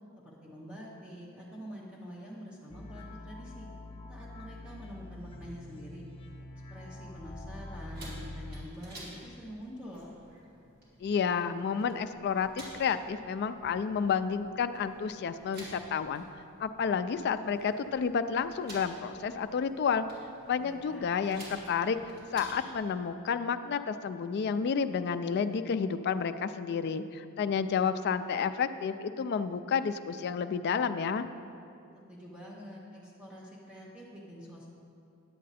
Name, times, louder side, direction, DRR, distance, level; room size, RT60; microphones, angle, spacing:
voice 1, 0.2-3.7 4.1-6.1 6.7-10.1 20.6-21.4 32.1-34.7, equal, 5° right, -5 dB, 0.9 m, -46 dB
sound 1, 2.7-8.6, left 1 dB, 25° left, 0.7 m, -45 dB
sound 2, 7.9-22.7, right 1 dB, 50° right, 2.5 m, -52 dB
voice 2, 11.0-16.2 16.6-20.0 20.5-22.0 22.3-31.3, left 6 dB, 50° left, 10 dB, 0.3 m, -30 dB
10.0 x 7.5 x 4.1 m, 2.6 s
head